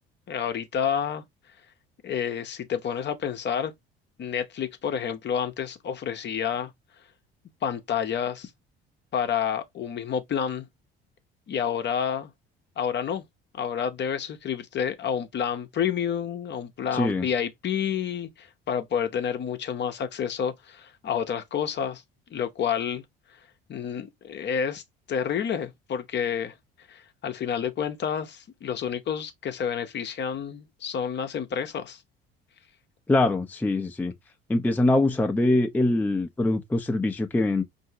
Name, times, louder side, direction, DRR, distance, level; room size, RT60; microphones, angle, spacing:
voice 1, 0.3-1.2 2.0-3.7 4.2-6.7 7.6-8.5 9.1-10.7 11.5-12.3 12.8-13.2 13.5-22.0 22.3-23.0 23.7-24.8 25.1-26.5 26.9-32.0, left 8 dB, 35° left, 0.8 m, -29 dB
voice 2, 16.9-17.3 33.1-34.1 34.5-37.6, left 2 dB, 5° left, 0.6 m, -23 dB
5.4 x 2.7 x 2.7 m
figure-of-eight pair, 55°, 30 cm